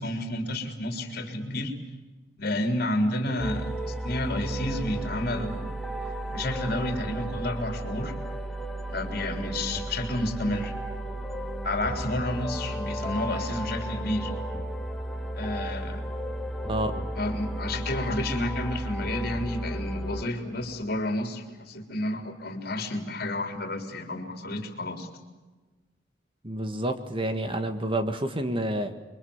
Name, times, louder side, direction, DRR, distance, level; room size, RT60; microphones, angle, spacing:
voice 1, 0.0-1.7 2.4-5.7 6.3-8.1 8.9-10.7 11.6-14.3 15.3-16.0 17.2-25.1, left 1 dB, 55° left, 5 dB, 3.9 m, -30 dB
sound 1, 3.4-20.2, right 1 dB, ahead, 1.6 m, -34 dB
voice 2, 26.4-28.9, right 1 dB, 30° right, 8 dB, 1.8 m, -29 dB
29.5 x 23.5 x 7.3 m, 1.2 s
head